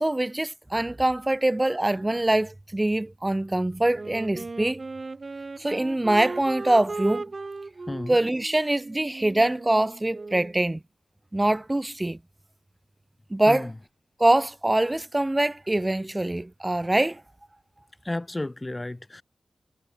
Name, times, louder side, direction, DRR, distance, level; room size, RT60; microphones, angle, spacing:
voice 1, 0.0-4.8 5.6-7.3 8.1-10.8 11.3-12.2 13.3-13.7 14.2-17.2, right 1 dB, 15° right, 0.7 m, -24 dB
Wind instrument woodwind instrument, 3.9-10.6, right 3 dB, 35° right, 2.8 m, -37 dB
voice 2, 7.9-8.2 13.5-13.7 18.0-19.2, left 2 dB, 15° left, 0.5 m, -32 dB
wide cardioid pair, 105°, 0 cm